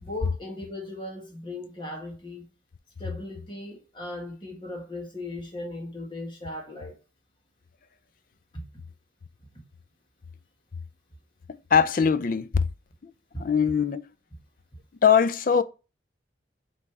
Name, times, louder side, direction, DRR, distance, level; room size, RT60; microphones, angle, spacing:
voice 1, 0.0-2.5 3.0-7.0 8.5-8.6, left 2 dB, 25° left, 1.7 m, -37 dB
voice 2, 11.5-12.7 13.0-13.1 13.4-14.0 15.0-15.6, left 7 dB, 50° left, 0.4 m, -22 dB
6.1 x 3.3 x 4.7 m
head